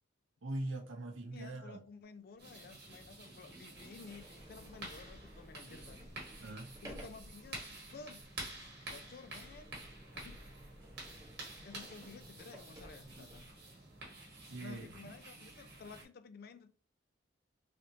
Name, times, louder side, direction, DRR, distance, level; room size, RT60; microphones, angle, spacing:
voice 1, 0.4-1.8 6.4-6.8 14.5-14.9, right 1 dB, 80° right, 0.6 m, -42 dB
voice 2, 1.3-6.1 6.8-8.2 8.9-9.8 10.1-10.4 11.6-13.5 14.6-16.7, left 4 dB, 50° left, 0.3 m, -53 dB
Sliding door, 2.3-2.4 3.1-3.2 3.7-13.6, equal, 15° right, 0.9 m, -56 dB
sound 1, 2.4-16.0, right 2 dB, 55° right, 1.1 m, -50 dB
3.3 x 2.6 x 2.7 m
head